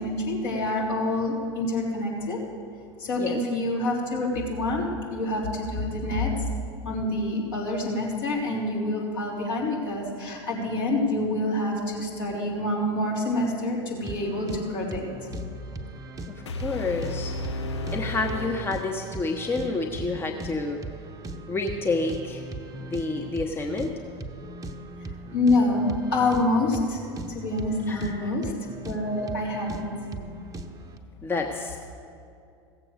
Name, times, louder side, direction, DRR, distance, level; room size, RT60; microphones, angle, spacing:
voice 1, 0.0-2.4 3.0-6.3 6.8-15.1 25.0-27.0 27.3-28.5 28.8-29.9, left 2 dB, 60° left, -4 dB, 3.5 m, -27 dB
sound 1, 14.0-31.0, right 2 dB, 25° right, 0.8 m, -39 dB
voice 2, 16.3-17.3 17.9-20.8 21.5-22.4 22.8-23.9 27.9-28.3 31.2-31.8, left 3 dB, 15° left, 3 dB, 0.9 m, -29 dB
sound 2, 16.5-19.5, left 2 dB, 80° left, 0.7 m, -34 dB
16.0 x 7.6 x 6.6 m, 2.5 s
figure-of-eight pair, 80°, 14 cm